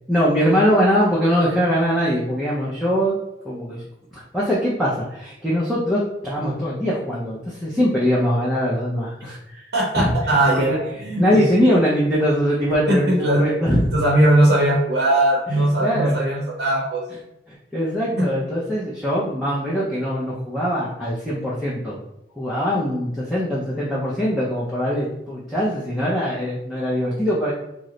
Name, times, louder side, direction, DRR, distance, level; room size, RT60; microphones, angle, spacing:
voice 1, 0.1-3.2 3.4-3.8 4.1-9.6 10.0-10.1 10.5-10.8 11.2-13.9 15.8-16.1 17.5-22.0 22.4-27.5, equal, ahead, -8 dB, 0.5 m, -22 dB
voice 2, 9.7-11.4 12.9-17.0 18.2-18.3, right 1 dB, 80° right, -4 dB, 0.7 m, -19 dB
3.0 x 2.0 x 3.7 m, 0.88 s
head